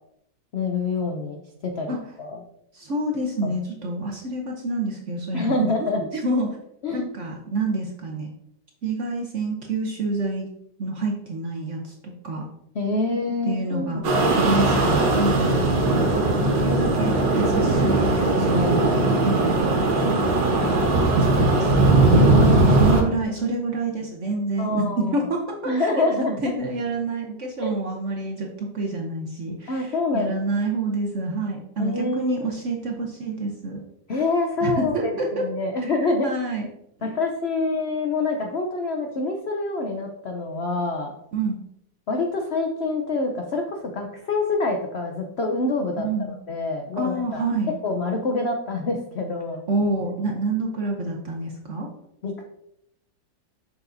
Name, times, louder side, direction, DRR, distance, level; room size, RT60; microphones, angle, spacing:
voice 1, 0.5-2.4 3.4-3.5 5.3-6.0 6.8-7.1 12.7-14.4 22.2-23.0 24.6-25.2 25.7-26.4 27.6-27.8 29.7-30.4 31.8-32.3 34.1-35.0 35.3-36.3 37.0-41.1 42.1-47.4 47.8-49.8 52.2-52.4, left 3 dB, 75° left, 3 dB, 0.6 m, -26 dB
voice 2, 2.7-5.9 6.1-6.6 6.9-8.3 8.8-10.5 10.8-12.5 13.4-14.0 14.3-15.6 16.2-18.8 19.1-19.7 19.9-20.1 21.3-22.0 22.7-26.1 26.4-33.8 34.6-35.5 35.8-36.7 37.0-37.1 41.3-41.6 46.0-46.4 47.0-47.7 49.7-51.9, right 2 dB, 55° right, 1 dB, 0.8 m, -27 dB
sound 1, 14.0-23.0, right 2 dB, 70° right, 1.8 m, -19 dB
7.0 x 5.7 x 2.6 m, 0.77 s
omnidirectional pair, 2.0 m